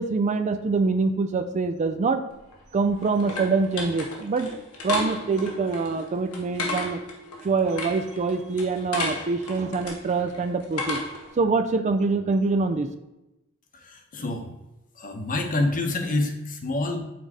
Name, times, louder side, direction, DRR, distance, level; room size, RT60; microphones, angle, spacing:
voice 1, 0.0-2.2 2.7-4.5 4.8-7.0 7.4-11.0 11.4-12.9, right 4 dB, 30° right, 9 dB, 0.3 m, -25 dB
sound 1, 2.3-11.3, left 2 dB, 85° left, 1.4 m, -34 dB
voice 2, 13.7-14.5 14.9-17.0, left 2 dB, 40° left, 4 dB, 0.9 m, -27 dB
6.0 x 3.9 x 4.8 m, 0.96 s
head